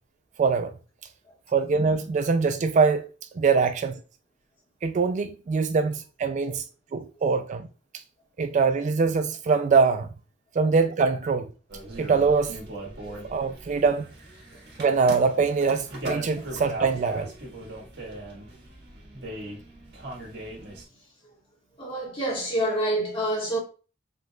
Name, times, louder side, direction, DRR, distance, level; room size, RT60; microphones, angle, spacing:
voice 1, 0.4-0.7 1.5-3.1 3.4-4.0 4.8-6.6 6.9-7.7 8.4-10.1 10.6-11.5 12.0-12.6 13.3-14.1 14.8-17.3, right 5 dB, 40° right, 0.3 m, -23 dB
sound 1, 11.7-20.8, right 1 dB, 60° right, 1.6 m, -39 dB
voice 2, 21.8-23.6, right 1 dB, 30° left, 1.9 m, -27 dB
5.1 x 3.8 x 2.3 m
head